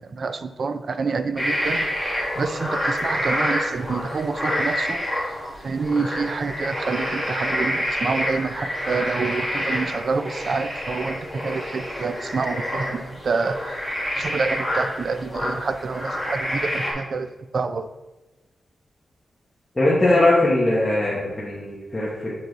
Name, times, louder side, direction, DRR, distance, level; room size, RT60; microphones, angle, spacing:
voice 1, 0.0-5.1 5.6-13.6 14.2-17.9, right 4 dB, 50° right, 10 dB, 0.4 m, -27 dB
sound 1, 1.4-16.9, equal, 10° right, 1.9 m, -27 dB
voice 2, 19.8-22.3, left 2 dB, 15° left, -7 dB, 1.1 m, -20 dB
6.9 x 4.7 x 4.0 m, 1.1 s
wide cardioid pair, 175°, 0 cm